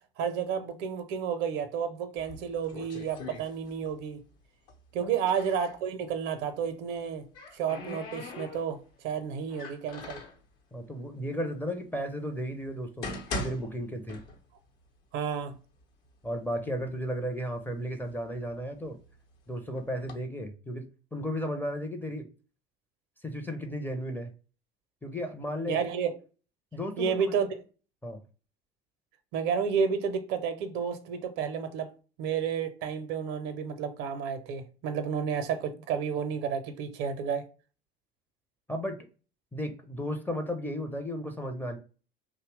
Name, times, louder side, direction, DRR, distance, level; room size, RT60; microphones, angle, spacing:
voice 1, 0.2-4.2 4.9-7.3 7.5-10.2 15.1-15.6 25.7-26.1 27.0-27.6 29.3-31.9 32.2-37.4, right 7 dB, 60° right, 0.6 m, -31 dB
sound 1, 2.2-4.1 4.3-5.8 6.9-8.9 9.5-10.4 11.2-11.3 12.0-12.1 12.7-14.7 15.0-15.1 15.8-15.9 16.3-16.9 17.5-19.1 19.8-20.1, left 2 dB, 65° left, 0.8 m, -41 dB
voice 2, 10.7-14.2 16.2-19.0 19.5-20.8 21.1-22.2 23.2-24.3 25.0-25.8 26.7-27.3 28.0-28.2 38.7-39.0 39.5-41.8, equal, 5° left, 0.5 m, -34 dB
2.7 x 2.1 x 3.1 m
figure-of-eight pair, 60°, 29 cm